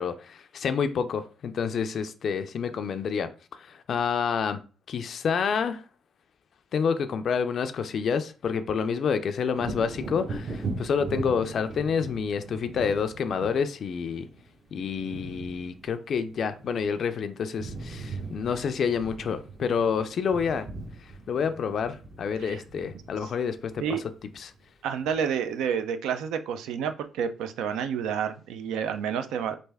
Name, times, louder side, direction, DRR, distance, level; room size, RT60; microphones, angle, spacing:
voice 1, 0.0-4.6 4.9-5.8 6.7-14.3 14.7-20.7 21.0-24.0 24.4-24.5, left 6 dB, 60° left, 0.3 m, -28 dB
Wind / Thunder, 9.5-17.1 17.4-24.6 25.0-25.2, right 3 dB, 45° right, 0.8 m, -39 dB
voice 2, 24.8-29.6, right 7 dB, 90° right, 0.4 m, -29 dB
3.2 x 2.5 x 3.4 m
cardioid pair, 90°, 0 cm